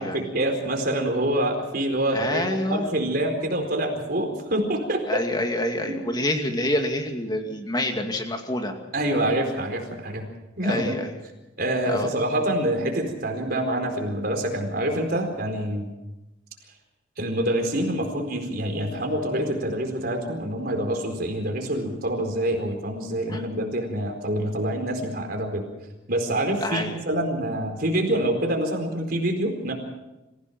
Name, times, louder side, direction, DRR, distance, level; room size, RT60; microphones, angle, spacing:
voice 1, 0.0-5.2 5.8-6.0 8.9-10.3 10.6-10.9 11.6-15.9 17.2-25.7 26.1-29.7, right 1 dB, 55° right, 3 dB, 4.4 m, -26 dB
voice 2, 2.1-2.9 5.1-8.7 10.6-11.1 11.9-12.1 23.3-23.4 26.6-27.0, left 1 dB, 20° left, 4 dB, 2.4 m, -27 dB
26.0 x 16.0 x 6.1 m, 1.0 s
head